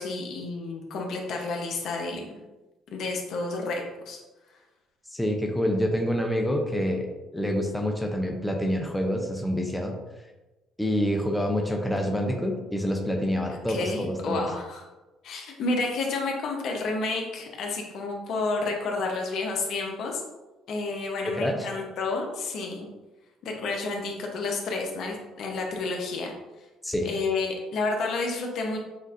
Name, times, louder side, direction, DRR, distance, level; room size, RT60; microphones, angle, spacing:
voice 1, 0.0-2.4 2.9-4.2 13.5-14.8 15.2-20.2 20.7-22.9 23.4-26.3 27.0-28.8, left 3 dB, 65° left, 1 dB, 0.8 m, -30 dB
voice 2, 5.1-7.1 7.3-9.9 10.8-14.5 21.3-21.7 26.8-27.1, equal, 5° left, 1 dB, 0.6 m, -27 dB
6.3 x 2.6 x 2.5 m, 1.1 s
cardioid pair, 90°, 0 cm